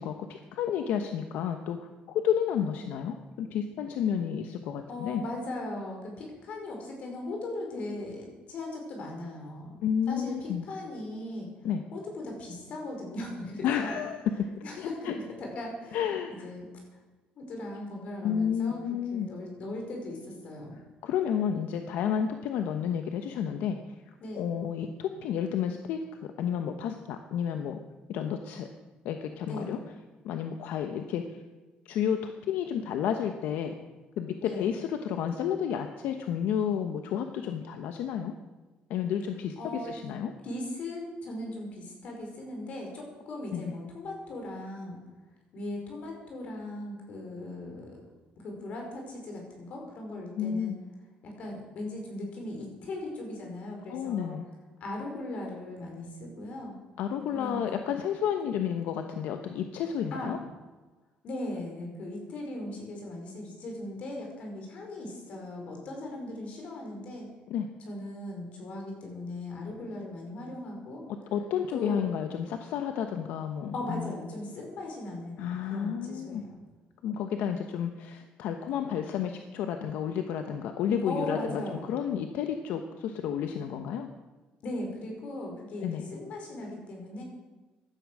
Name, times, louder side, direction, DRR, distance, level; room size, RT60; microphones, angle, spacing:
voice 1, 0.0-5.2 9.8-10.7 11.6-11.8 13.6-14.4 14.7-15.2 15.9-16.5 18.2-19.3 21.0-23.8 24.3-26.0 26.4-27.8 28.1-28.7 29.0-29.8 30.2-31.3 31.8-33.7 34.2-38.4 38.9-40.3 43.5-43.8 50.3-50.8 53.9-54.4 57.0-60.4 67.5-67.7 71.3-74.1 75.4-76.4 77.0-84.1 85.8-86.0, left 8 dB, 75° left, 6 dB, 1.1 m, -31 dB
voice 2, 4.9-9.7 10.1-11.5 11.9-14.0 14.6-16.0 16.4-16.6 17.4-18.8 19.1-20.8 24.2-24.5 29.5-29.7 34.4-34.7 39.6-39.9 40.4-45.0 45.5-48.0 48.4-50.7 51.2-54.4 54.8-56.7 57.3-57.6 60.1-60.3 61.2-67.3 67.8-71.0 71.7-72.0 73.7-76.6 81.1-81.8 84.6-87.2, left 1 dB, 45° left, 1 dB, 4.9 m, -38 dB
16.0 x 12.0 x 6.3 m, 1.2 s
cardioid pair, 180°, 3 cm